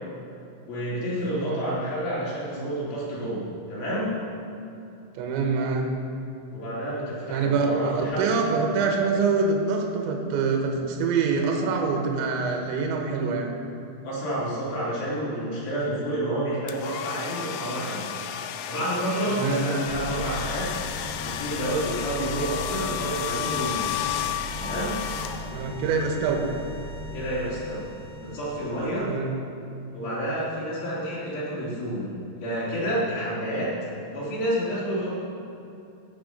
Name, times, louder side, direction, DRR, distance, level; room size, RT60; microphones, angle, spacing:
voice 1, 0.7-4.1 6.5-8.3 14.0-18.1 18.7-20.7 21.2-23.9 24.6-24.9 27.1-27.8 28.2-29.1 29.9-32.1 32.4-33.7 34.1-35.1, right 1 dB, 50° left, -8 dB, 4.8 m, -29 dB
voice 2, 5.1-5.9 7.3-13.5 19.3-19.7 25.5-26.4 29.0-29.4, right 4 dB, 75° right, 1 dB, 3.3 m, -25 dB
sound 1, 16.7-25.8, left 10 dB, 85° left, 2.9 m, -32 dB
sound 2, 19.9-29.3, equal, 60° right, 2.6 m, -38 dB
16.0 x 6.6 x 5.3 m, 2.7 s
omnidirectional pair, 5.9 m